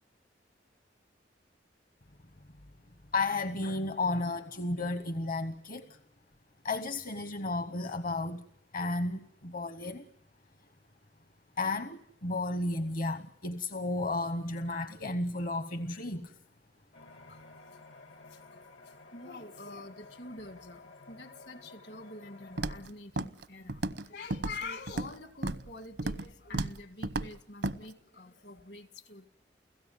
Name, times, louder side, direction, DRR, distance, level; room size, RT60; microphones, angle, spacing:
voice 1, 3.1-6.0 6.6-8.4 8.7-10.1 11.6-16.4, left 2 dB, 50° left, 1.0 m, -33 dB
sound 1, 16.9-22.9, left 3 dB, 85° left, 2.6 m, -53 dB
voice 2, 17.1-17.8 18.3-29.3, left 3 dB, 70° left, 1.9 m, -46 dB
Walk footsteps, 22.6-22.9 23.2-23.4 23.7-24.1 24.3-25.1 25.4-25.7 26.0-26.3 26.5-26.8 27.0-27.3 27.6-27.8, right 2 dB, 80° right, 0.9 m, -33 dB
29.5 x 16.5 x 9.4 m
head